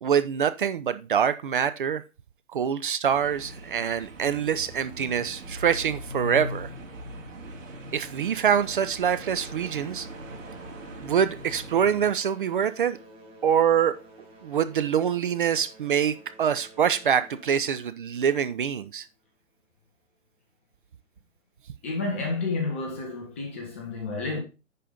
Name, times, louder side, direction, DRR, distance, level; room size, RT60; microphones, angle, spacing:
voice 1, 0.0-2.0 2.5-6.7 7.9-10.1 11.0-13.0 13.4-14.0 14.4-19.1, right 8 dB, 40° right, 0.5 m, -25 dB
sound 1, 3.1-12.1, equal, 70° right, 2.5 m, -40 dB
sound 2, 9.0-19.3 20.1-20.2 20.9-21.0 21.6-21.7, right 1 dB, 15° right, 2.0 m, -52 dB
voice 2, 21.8-24.4, left 3 dB, 10° left, 0.5 m, -30 dB
10.5 x 4.2 x 3.7 m
hypercardioid pair, 140°, 40 cm